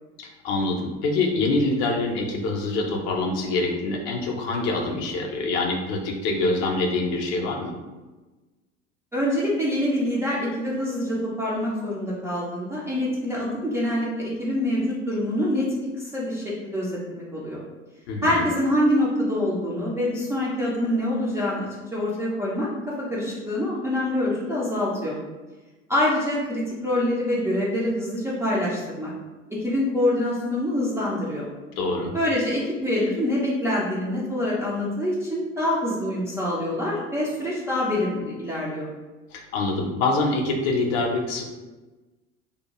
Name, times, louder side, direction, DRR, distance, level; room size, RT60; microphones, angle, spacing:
voice 1, 0.2-7.7 18.1-18.5 31.8-32.2 39.3-41.5, left 3 dB, 45° left, 2 dB, 0.5 m, -25 dB
voice 2, 9.1-15.7 15.9-17.6 18.2-22.7 23.1-25.2 25.9-29.1 29.5-31.5 32.1-38.9, left 1 dB, 10° right, -8 dB, 0.3 m, -25 dB
2.6 x 2.1 x 2.9 m, 1.2 s
figure-of-eight pair, 70°, 37 cm